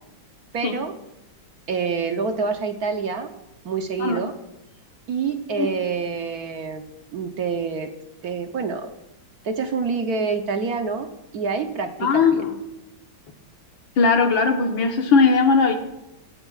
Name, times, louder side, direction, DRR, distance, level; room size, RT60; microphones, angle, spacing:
voice 1, 0.5-0.9 1.7-3.3 3.6-4.4 5.1-6.8 7.1-7.9 8.2-8.9 9.4-11.1 11.3-12.5, right 5 dB, 60° right, 6 dB, 1.2 m, -26 dB
voice 2, 12.0-12.5 14.0-15.7, left 4 dB, 80° left, 4 dB, 2.0 m, -18 dB
17.5 x 13.0 x 2.4 m, 0.93 s
omnidirectional pair, 2.1 m